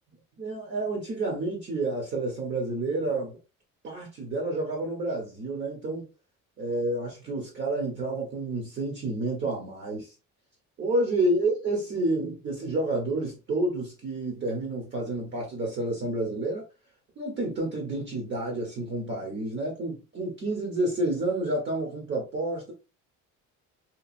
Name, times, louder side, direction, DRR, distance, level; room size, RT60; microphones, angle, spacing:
voice 1, 0.4-3.4 3.8-6.1 6.6-10.1 10.8-16.6 17.2-22.7, right 2 dB, 35° right, 0.8 m, -29 dB
2.9 x 2.4 x 2.4 m
cardioid pair, 175°, 31 cm